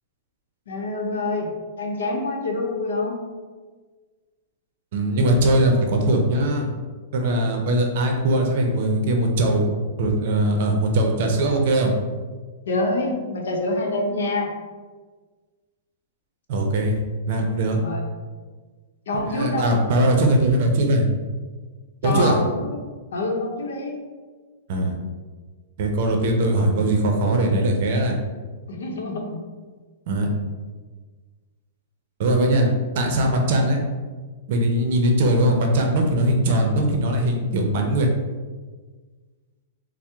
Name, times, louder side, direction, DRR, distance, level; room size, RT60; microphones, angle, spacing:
voice 1, 0.7-1.5 1.8-3.2 12.7-14.5 17.7-18.0 19.1-19.7 22.0-22.7 23.1-24.0 28.7-29.4, left 2 dB, 85° left, 0 dB, 0.7 m, -26 dB
voice 2, 4.9-6.7 7.1-9.7 10.0-11.9 16.5-17.0 17.3-17.8 19.2-21.0 22.0-22.4 24.7-24.9 25.8-28.2 30.1-30.3 32.2-32.7 32.9-33.8 34.5-38.1, right 1 dB, 50° right, 2 dB, 0.6 m, -20 dB
4.4 x 2.0 x 3.4 m, 1.4 s
hypercardioid pair, 160°, 0 cm